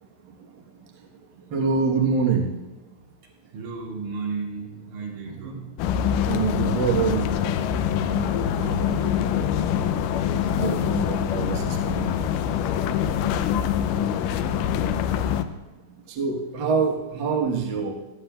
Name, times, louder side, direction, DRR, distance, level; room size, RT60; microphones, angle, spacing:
voice 1, 1.5-2.5 5.2-5.6 6.2-7.4 10.5-12.1 16.1-17.9, right 5 dB, 90° right, -1 dB, 1.0 m, -25 dB
voice 2, 3.5-5.6 8.0-9.2 12.8-13.0, right 4 dB, 70° right, -3 dB, 3.6 m, -35 dB
sound 1, 5.8-15.4, left 8 dB, 80° left, 2.0 m, -24 dB
18.0 x 13.0 x 2.3 m, 1.1 s
omnidirectional pair, 4.2 m